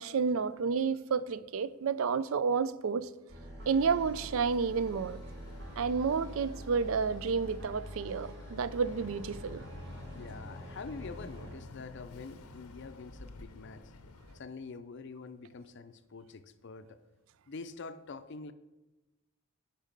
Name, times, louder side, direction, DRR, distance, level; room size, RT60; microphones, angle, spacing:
voice 1, 0.0-3.1 3.7-5.2 5.8-9.6, right 5 dB, 65° right, 0.4 m, -30 dB
sound 1, 3.3-11.6, equal, 50° right, 1.6 m, -46 dB
Boat Water vehicle, 3.6-14.4, left 3 dB, 90° left, 0.8 m, -51 dB
voice 2, 10.1-13.8 14.3-17.0 17.5-18.5, left 4 dB, 55° left, 0.5 m, -45 dB
8.8 x 5.4 x 5.2 m
head